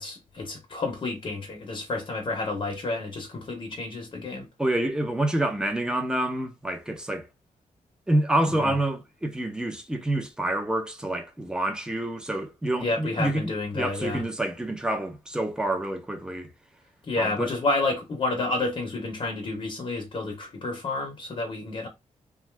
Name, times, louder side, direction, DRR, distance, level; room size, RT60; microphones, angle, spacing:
voice 1, 0.0-4.5 8.6-8.7 12.8-14.2 17.0-21.9, left 2 dB, 40° left, 0.8 m, -30 dB
voice 2, 4.6-7.3 8.1-16.5 17.2-17.5, right 1 dB, 5° right, 0.6 m, -27 dB
2.7 x 2.3 x 3.2 m
wide cardioid pair, 120°, 14 cm